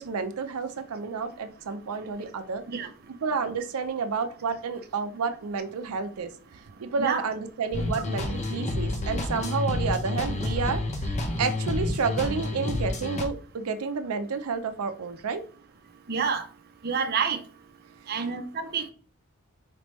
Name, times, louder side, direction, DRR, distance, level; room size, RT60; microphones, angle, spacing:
voice 1, 0.0-2.6 3.2-6.3 6.8-11.1 11.4-15.4, right 5 dB, 85° right, 0.5 m, -30 dB
voice 2, 7.0-7.3 16.1-16.4 16.8-17.4 18.1-18.9, right 6 dB, 45° right, 0.6 m, -28 dB
sound 1, 7.7-13.3, left 2 dB, 35° left, 0.8 m, -29 dB
4.9 x 3.3 x 3.0 m
head